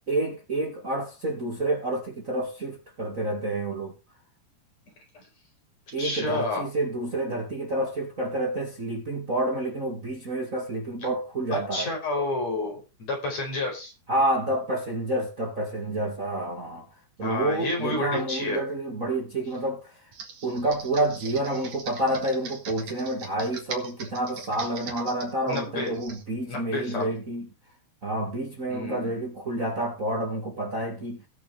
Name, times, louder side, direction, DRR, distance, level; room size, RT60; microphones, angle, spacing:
voice 1, 0.1-3.9 5.9-11.9 14.1-16.8 17.2-19.8 20.4-27.5 28.0-31.2, right 1 dB, 30° right, 2.2 m, -29 dB
voice 2, 6.0-6.7 11.5-13.9 17.2-18.6 25.5-25.9 26.4-27.1 28.7-29.1, left 2 dB, 60° left, 6.1 m, -30 dB
Computer keyboard, 20.1-26.2, right 5 dB, 75° right, 3.6 m, -41 dB
19.5 x 6.9 x 3.4 m
omnidirectional pair, 3.4 m